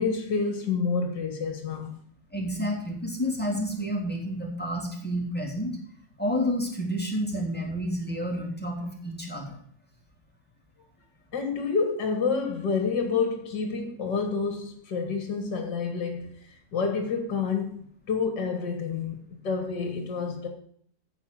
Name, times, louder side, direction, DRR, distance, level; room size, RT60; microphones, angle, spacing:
voice 1, 0.0-1.9 11.3-20.5, left 5 dB, 70° left, 2.2 m, -29 dB
voice 2, 2.3-5.7 6.2-9.6, equal, 5° left, 3.0 m, -30 dB
14.5 x 4.8 x 7.6 m
omnidirectional pair, 2.0 m